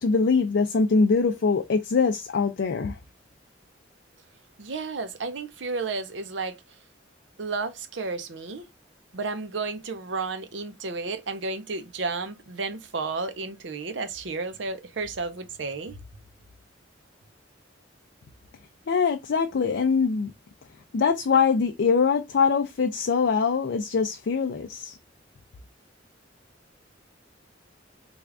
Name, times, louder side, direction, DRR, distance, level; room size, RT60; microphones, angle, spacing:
voice 1, 0.0-3.0 18.9-20.3 20.9-25.0, left 5 dB, 65° left, 0.4 m, -23 dB
voice 2, 4.6-6.6 7.4-8.6 9.1-16.0, right 4 dB, 70° right, 0.6 m, -32 dB
3.4 x 2.4 x 3.4 m
head